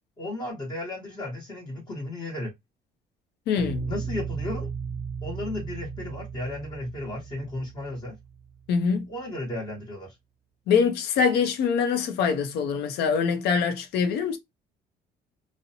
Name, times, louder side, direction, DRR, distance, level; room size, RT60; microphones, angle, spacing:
voice 1, 0.2-2.5 3.9-4.7 5.2-8.1 9.1-10.1, left 2 dB, 30° left, 1.1 m, -34 dB
voice 2, 3.5-3.8 8.7-9.1 10.7-14.4, left 6 dB, 75° left, 0.6 m, -24 dB
sound 1, 3.6-8.8, right 6 dB, 50° right, 0.4 m, -36 dB
2.5 x 2.0 x 2.7 m
cardioid pair, 110°, 17 cm